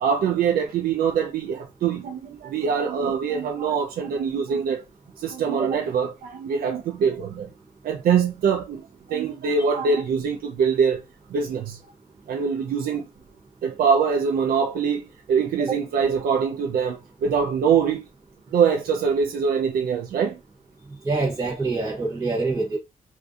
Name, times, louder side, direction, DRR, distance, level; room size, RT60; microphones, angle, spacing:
voice 1, 0.0-4.8 5.2-7.5 7.8-8.8 9.1-11.0 11.3-11.8 12.3-13.0 13.6-15.0 15.3-18.0 18.5-20.3, right 6 dB, 85° right, 0.4 m, -23 dB
voice 2, 21.0-22.8, right 3 dB, 20° right, 0.7 m, -25 dB
2.5 x 2.3 x 2.3 m
cardioid pair, 105°, 15 cm